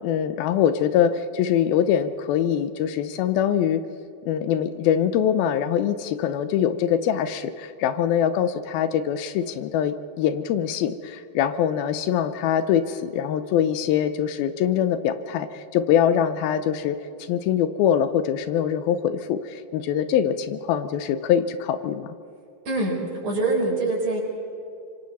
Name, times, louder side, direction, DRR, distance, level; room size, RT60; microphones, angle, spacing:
voice 1, 0.0-3.8 4.3-17.0 17.3-22.1, left 9 dB, 80° left, 11 dB, 2.5 m, -23 dB
voice 2, 23.2-24.2, right 2 dB, 60° right, -4 dB, 6.0 m, -24 dB
26.0 x 25.5 x 4.2 m, 2.7 s
omnidirectional pair, 4.4 m